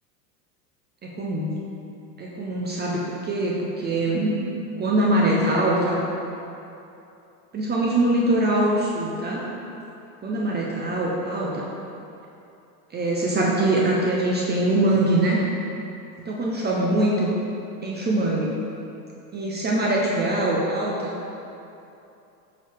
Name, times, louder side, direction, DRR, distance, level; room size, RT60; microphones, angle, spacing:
voice 1, 1.0-1.6 2.2-4.4 4.8-6.0 7.5-9.5 10.2-11.6 12.9-15.4 16.3-17.3 17.8-18.6 19.3-21.1, right 1 dB, 20° right, -3 dB, 0.6 m, -23 dB
6.0 x 4.7 x 3.5 m, 2.8 s
hypercardioid pair, 100°, 49 cm